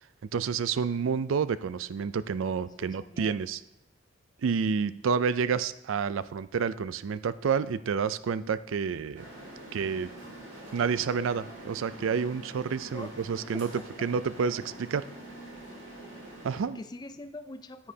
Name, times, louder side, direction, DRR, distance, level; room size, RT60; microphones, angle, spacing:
voice 1, 0.3-3.6 4.4-9.3 9.7-10.1 10.7-13.7 14.0-15.0 16.4-16.8, right 6 dB, 75° right, 15 dB, 0.4 m, -29 dB
voice 2, 2.8-3.4 12.9-13.2 13.5-14.1 16.5-17.9, left 2 dB, 20° left, 10 dB, 0.4 m, -44 dB
sound 1, 9.1-16.6, right 1 dB, 60° right, 3.3 m, -45 dB
10.0 x 9.9 x 2.8 m, 0.83 s
head